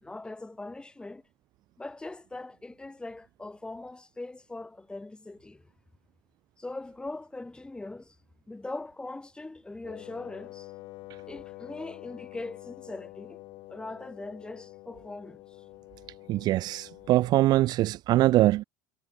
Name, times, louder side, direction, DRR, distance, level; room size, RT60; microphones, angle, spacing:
voice 1, 0.0-1.2 1.8-5.7 6.6-8.2 8.5-10.7 11.3-13.4 13.7-15.4, left 2 dB, 10° left, 4.7 m, -41 dB
Wind instrument woodwind instrument, 9.8-17.4, left 19 dB, 65° left, 6.3 m, -47 dB
voice 2, 16.3-18.6, right 15 dB, 50° right, 0.4 m, -23 dB
cardioid pair, 125°, 9 cm